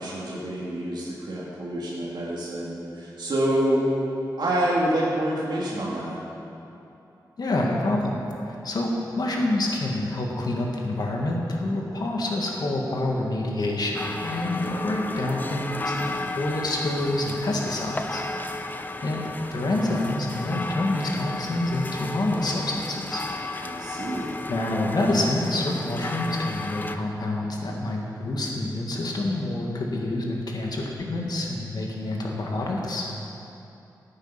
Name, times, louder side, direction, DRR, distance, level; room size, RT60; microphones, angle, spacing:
voice 1, 0.0-3.8 4.4-6.2 14.7-14.8 23.6-24.4, right 1 dB, 85° right, -6 dB, 2.4 m, -27 dB
voice 2, 7.4-8.2 8.4-18.2 19.0-19.2 19.5-23.2 24.5-33.1, left 2 dB, 65° left, -1 dB, 1.8 m, -27 dB
sound 1, 13.9-27.0, left 2 dB, 25° left, 0.6 m, -34 dB
15.0 x 9.0 x 5.8 m, 2.8 s
wide cardioid pair, 135°, 7 cm